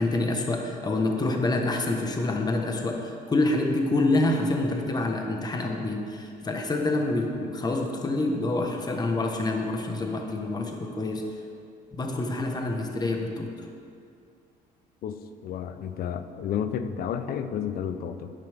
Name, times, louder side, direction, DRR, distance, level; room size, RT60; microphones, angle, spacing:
voice 1, 0.0-11.2 11.9-13.7, left 2 dB, 25° left, 2 dB, 1.3 m, -27 dB
voice 2, 15.0-18.3, left 8 dB, 65° left, 10 dB, 0.7 m, -31 dB
11.5 x 10.0 x 3.6 m, 2.4 s
cardioid pair, 110°, 17 cm